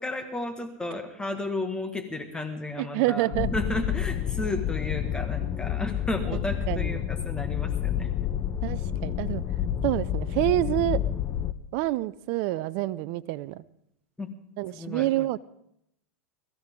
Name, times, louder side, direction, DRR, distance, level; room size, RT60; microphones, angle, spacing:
voice 1, 0.0-8.1 14.2-14.3 14.7-15.1, left 2 dB, 10° left, 5 dB, 1.7 m, -33 dB
voice 2, 2.8-3.5 6.7-6.9 8.6-9.4 9.8-11.0 11.7-13.6 14.6-15.4, right 16 dB, 55° right, 17 dB, 0.5 m, -27 dB
sound 1, 3.3-11.5, left 10 dB, 35° left, 0.9 m, -29 dB
22.5 x 13.5 x 3.7 m, 0.75 s
hypercardioid pair, 105°, 8 cm